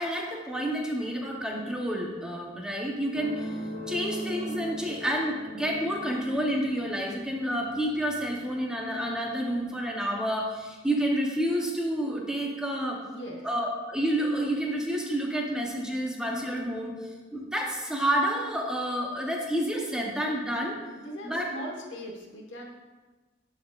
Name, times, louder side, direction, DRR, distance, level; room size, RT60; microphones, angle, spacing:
voice 1, 0.0-3.6 3.9-13.0 13.4-20.8 21.2-21.5, equal, 5° right, -1 dB, 0.7 m, -29 dB
sound 1, 3.1-10.2 11.1-11.2, equal, 65° left, 1.0 m, -40 dB
voice 2, 13.1-13.5 21.0-22.6, equal, 90° left, -1 dB, 1.3 m, -39 dB
11.5 x 4.1 x 2.3 m, 1.3 s
head